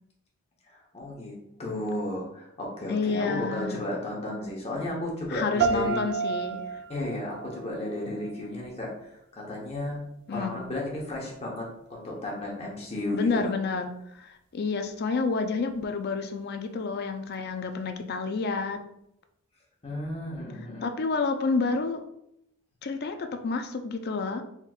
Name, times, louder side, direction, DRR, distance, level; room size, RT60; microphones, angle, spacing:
voice 1, 0.7-1.3 1.6-6.0 6.9-10.0 10.3-13.5 19.8-20.9, left 1 dB, 30° left, -3 dB, 1.0 m, -33 dB
voice 2, 2.9-3.8 5.3-6.6 10.3-10.6 13.1-13.9 14.2-18.8 20.8-22.0 22.8-24.4, left 4 dB, 45° left, 7 dB, 0.4 m, -29 dB
sound 1, 5.6-8.6, right 6 dB, 55° right, 0.3 m, -31 dB
4.3 x 3.5 x 2.4 m, 0.79 s
head